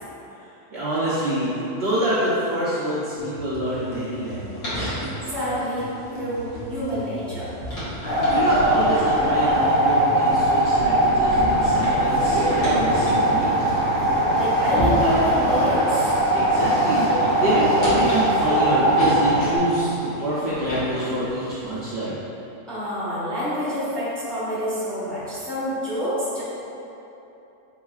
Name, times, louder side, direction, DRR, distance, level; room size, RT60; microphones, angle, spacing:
voice 1, 0.7-5.0 8.3-13.5 16.3-17.1 17.4-22.2, right 1 dB, 55° right, -10 dB, 0.8 m, -26 dB
sound 1, 3.2-15.2, left 1 dB, 45° left, 0.9 m, -38 dB
sound 2, 3.7-22.0, equal, 65° left, 1.8 m, -34 dB
voice 2, 5.3-5.9 6.2-7.5 14.3-16.0 22.7-26.4, equal, ahead, -11 dB, 1.0 m, -27 dB
sound 3, 8.1-19.6, right 1 dB, 20° left, 0.7 m, -20 dB
4.6 x 3.8 x 2.3 m, 2.9 s
omnidirectional pair, 1.6 m